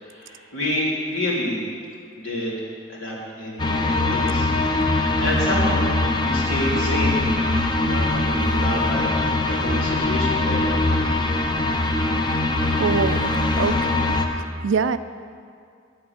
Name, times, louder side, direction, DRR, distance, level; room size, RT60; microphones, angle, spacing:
voice 1, 0.0-1.6 2.2-4.5 4.9-5.8 6.2-7.2 7.8-9.1 9.5-10.8, left 1 dB, 80° left, -5 dB, 3.1 m, -28 dB
sound 1, 3.6-14.3, left 2 dB, 20° left, 0.7 m, -22 dB
voice 2, 12.8-13.8 14.6-15.0, right 5 dB, 65° right, 13 dB, 0.4 m, -23 dB
9.5 x 8.1 x 8.0 m, 2.3 s
head